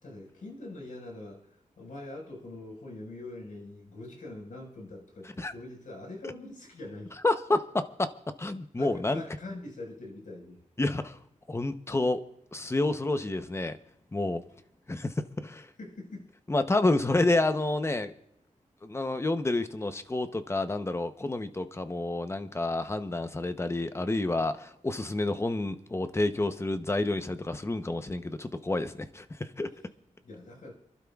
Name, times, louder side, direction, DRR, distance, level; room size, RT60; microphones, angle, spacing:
voice 1, 0.0-7.1 8.7-10.6 15.8-16.3 30.2-30.7, left 2 dB, 80° left, -1 dB, 4.9 m, -43 dB
voice 2, 7.2-8.1 8.4-9.2 10.8-11.2 11.5-12.2 12.5-13.8 14.1-14.4 14.9-15.7 16.5-18.1 18.8-29.7, left 2 dB, 20° left, 9 dB, 0.8 m, -29 dB
30.0 x 12.0 x 2.4 m, 0.80 s
wide cardioid pair, 125°, 14 cm